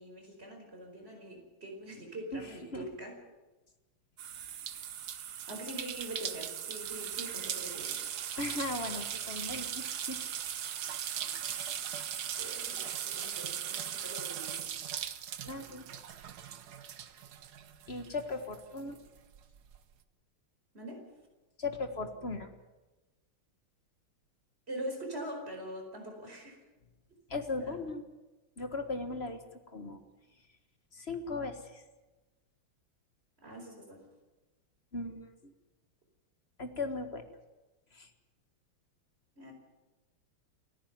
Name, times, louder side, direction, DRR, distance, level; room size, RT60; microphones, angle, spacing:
voice 1, 0.0-3.2 5.5-8.0 11.3-11.4 12.4-14.7 20.7-21.0 24.7-26.6 27.6-27.8 33.4-34.0 39.4-39.5, right 1 dB, 30° right, 3 dB, 4.9 m, -43 dB
voice 2, 2.3-2.8 8.4-10.2 15.4-15.8 17.9-19.0 21.6-22.5 27.3-28.0 28.6-29.4 29.7-30.0 30.9-31.8 34.9-35.5 36.6-37.2 37.9-38.1, left 3 dB, 35° left, 7 dB, 1.6 m, -37 dB
sound 1, 4.2-18.2 18.5-19.8, right 9 dB, 60° right, 1.4 m, -39 dB
29.5 x 10.0 x 9.4 m, 1.1 s
omnidirectional pair, 2.2 m